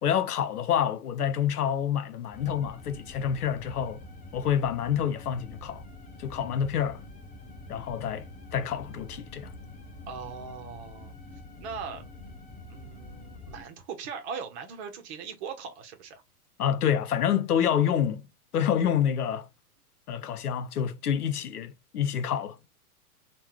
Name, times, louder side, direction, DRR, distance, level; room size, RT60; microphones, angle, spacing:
voice 1, 0.0-4.0 4.3-5.8 6.2-7.0 7.7-8.3 8.5-9.5 16.6-18.3 18.5-19.5 20.1-22.6, left 9 dB, 75° left, 0.8 m, -27 dB
sound 1, 2.3-13.6, left 2 dB, 15° left, 1.0 m, -46 dB
voice 2, 10.1-12.1 12.7-16.2, right 6 dB, 45° right, 1.4 m, -40 dB
3.6 x 2.8 x 4.4 m
figure-of-eight pair, 105°, 46 cm